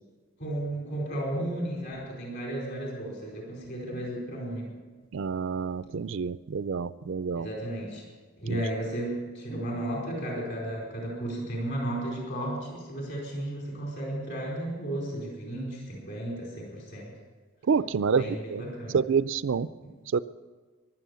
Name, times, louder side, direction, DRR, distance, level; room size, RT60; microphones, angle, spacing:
voice 1, 0.4-4.7 7.4-8.0 8.4-17.1 18.1-19.0 19.8-19.9, right 1 dB, 55° left, -2 dB, 4.8 m, -34 dB
voice 2, 5.1-7.5 8.5-8.6 17.7-18.6 18.9-19.7 20.1-20.2, right 5 dB, 60° right, 16 dB, 0.4 m, -27 dB
15.5 x 12.0 x 6.9 m, 1.4 s
head